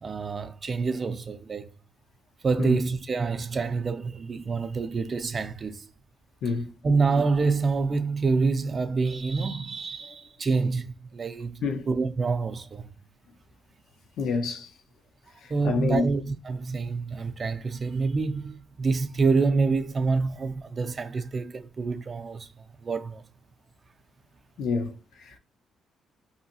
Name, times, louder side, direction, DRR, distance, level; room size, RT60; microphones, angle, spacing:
voice 1, 0.0-1.7 2.4-5.9 6.8-12.9 15.5-22.5 22.8-23.2, right 4 dB, 40° right, 0.5 m, -27 dB
voice 2, 14.2-14.7 15.4-16.1 24.6-25.4, left 4 dB, 75° left, 0.6 m, -28 dB
2.7 x 2.5 x 2.8 m
cardioid pair, 90°, 0 cm